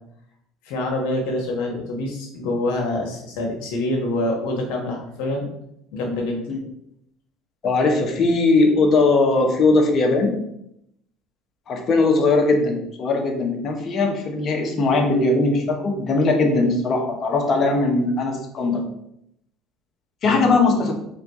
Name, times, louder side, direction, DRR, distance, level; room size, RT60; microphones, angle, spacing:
voice 1, 0.6-5.5 5.9-6.4 20.2-20.5, left 1 dB, 75° left, 1 dB, 1.2 m, -26 dB
voice 2, 7.6-10.4 11.7-18.8 20.2-20.9, left 3 dB, 45° left, 3 dB, 1.0 m, -19 dB
3.5 x 3.1 x 4.1 m, 0.77 s
supercardioid pair, 95°, 0 cm